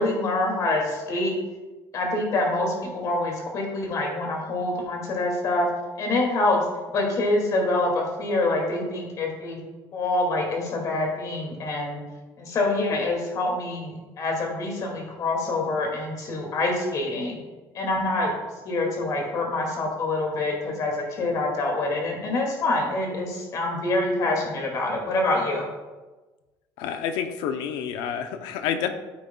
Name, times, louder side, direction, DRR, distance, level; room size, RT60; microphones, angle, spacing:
voice 1, 0.0-1.3 1.9-5.7 6.0-9.6 9.9-12.0 12.4-17.4 17.7-18.3 18.6-25.6, left 2 dB, 45° left, 0 dB, 2.3 m, -26 dB
voice 2, 26.8-28.9, left 8 dB, 85° left, 8 dB, 0.7 m, -28 dB
9.3 x 8.7 x 2.3 m, 1.2 s
cardioid pair, 135°, 8 cm